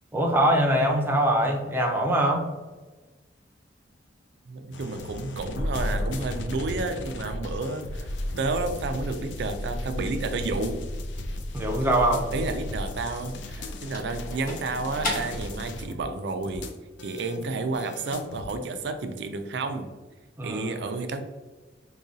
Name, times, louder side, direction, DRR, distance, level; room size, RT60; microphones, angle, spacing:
voice 1, 0.1-2.5 11.5-12.3 20.4-20.8, right 1 dB, 10° right, 1 dB, 0.5 m, -23 dB
voice 2, 4.5-8.1 8.4-10.8 12.3-16.7 17.0-19.9 20.4-21.2, right 3 dB, 65° right, 7 dB, 0.4 m, -31 dB
sound 1, 4.7-18.5, left 1 dB, 70° left, 0.4 m, -34 dB
sound 2, 12.5-16.0, left 1 dB, 50° left, 0.9 m, -36 dB
4.7 x 2.3 x 2.6 m, 1.3 s
head